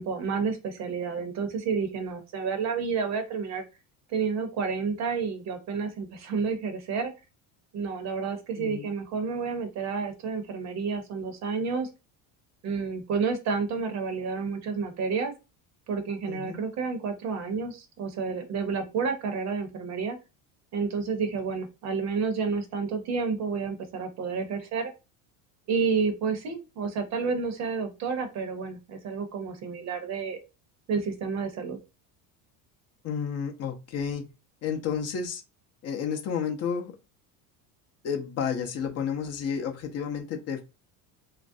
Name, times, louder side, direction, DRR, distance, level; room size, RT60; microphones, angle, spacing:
voice 1, 0.0-3.6 4.1-7.1 7.7-11.9 12.6-15.3 15.9-20.2 20.7-24.9 25.7-30.4 30.9-31.8, right 5 dB, 45° right, 6 dB, 0.7 m, -30 dB
voice 2, 8.6-8.9 16.3-16.6 33.0-34.2 34.6-35.4 35.8-36.9 38.0-40.6, left 7 dB, 40° left, 4 dB, 0.5 m, -31 dB
3.0 x 2.4 x 2.6 m, 0.28 s
cardioid pair, 150°, 40 cm